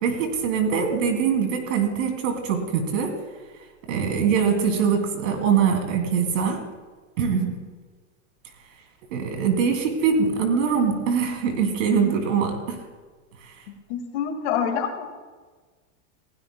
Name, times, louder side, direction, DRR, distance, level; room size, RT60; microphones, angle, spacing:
voice 1, 0.0-3.2 3.9-6.6 7.2-7.6 9.1-12.8, right 6 dB, 70° right, 4 dB, 2.7 m, -23 dB
voice 2, 13.9-15.2, left 7 dB, 55° left, 5 dB, 1.9 m, -27 dB
20.5 x 15.5 x 2.2 m, 1.4 s
supercardioid pair, 175°, 41 cm